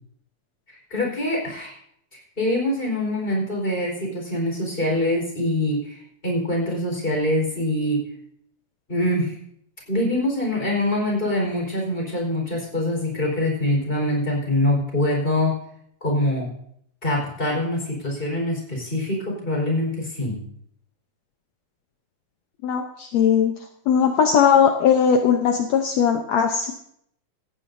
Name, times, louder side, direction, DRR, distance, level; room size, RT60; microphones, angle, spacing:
voice 1, 0.9-1.8 2.4-6.0 6.2-8.0 8.9-9.3 9.9-15.6 16.0-16.5 17.0-20.4, left 1 dB, 15° left, -1 dB, 4.5 m, -24 dB
voice 2, 22.6-23.5 23.9-26.7, left 7 dB, 70° left, 4 dB, 1.9 m, -19 dB
17.5 x 14.5 x 2.7 m, 0.69 s
omnidirectional pair, 3.6 m